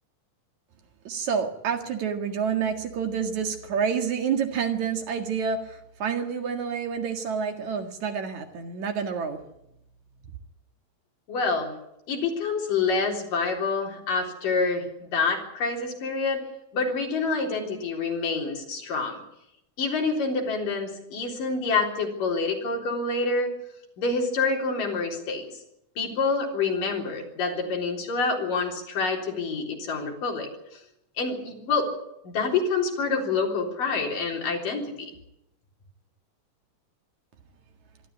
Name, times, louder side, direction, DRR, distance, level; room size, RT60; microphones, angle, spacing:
voice 1, 1.0-9.4, right 6 dB, 65° right, 5 dB, 3.2 m, -28 dB
voice 2, 11.3-11.7 12.1-16.4 16.7-19.2 19.8-23.5 24.0-25.4 26.0-30.8 31.2-31.9 32.2-34.9, left 4 dB, 85° left, 1 dB, 5.5 m, -27 dB
24.5 x 13.0 x 9.9 m, 0.82 s
omnidirectional pair, 3.7 m